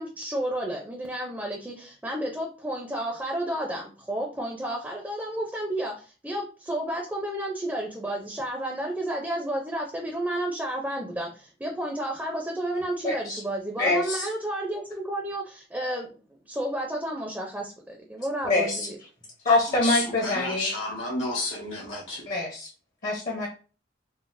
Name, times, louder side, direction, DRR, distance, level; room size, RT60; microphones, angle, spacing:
voice 1, 0.0-19.0, right 1 dB, 10° right, 0 dB, 0.5 m, -31 dB
voice 2, 13.0-13.4 13.8-14.3 18.4-18.9 19.4-20.7 22.3-22.7 23.0-23.5, left 2 dB, 45° left, -2 dB, 0.7 m, -25 dB
voice 3, 19.5-22.3, left 2 dB, 75° left, -1 dB, 1.4 m, -31 dB
3.8 x 2.0 x 2.5 m, 0.37 s
head